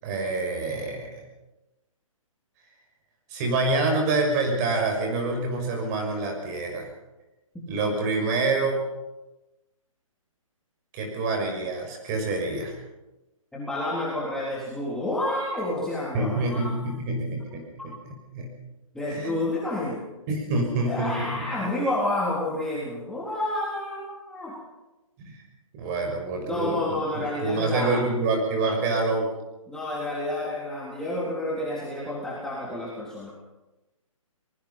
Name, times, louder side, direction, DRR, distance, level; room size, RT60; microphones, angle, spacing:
voice 1, 0.0-1.1 3.3-6.9 7.7-8.9 10.9-12.8 16.1-17.9 18.3-18.6 19.1-19.4 20.3-21.5 25.2-25.4 25.7-29.3, right 3 dB, 30° right, 2 dB, 6.3 m, -27 dB
voice 2, 13.5-16.7 18.9-20.0 20.8-24.6 26.4-28.1 29.7-33.3, left 1 dB, 5° left, -7 dB, 3.7 m, -29 dB
24.5 x 20.0 x 5.6 m, 1.0 s
hypercardioid pair, 150°, 18 cm